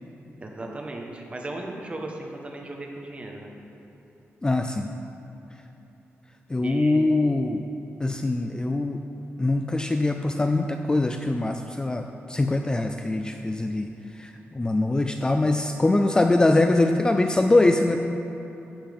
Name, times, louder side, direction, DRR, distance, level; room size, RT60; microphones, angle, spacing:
voice 1, 0.4-3.5 6.6-7.1, right 2 dB, 25° right, 0 dB, 1.2 m, -36 dB
voice 2, 4.4-4.9 6.5-7.7 8.0-9.0 9.4-13.9 14.2-18.0, left 2 dB, 15° left, 5 dB, 0.3 m, -23 dB
14.0 x 7.3 x 3.6 m, 2.9 s
wide cardioid pair, 125°, 5 cm